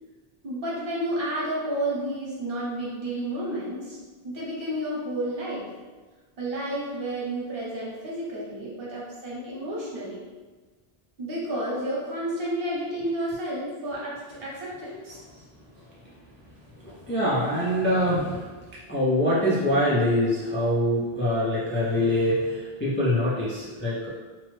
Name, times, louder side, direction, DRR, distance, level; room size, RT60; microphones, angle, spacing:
voice 1, 0.4-4.0 4.2-5.7 6.4-10.2 11.2-15.2, right 1 dB, 65° right, -6 dB, 1.0 m, -31 dB
voice 2, 16.8-18.5 18.9-24.1, left 1 dB, 20° left, -8 dB, 0.3 m, -24 dB
3.0 x 2.0 x 3.1 m, 1.3 s
omnidirectional pair, 1.0 m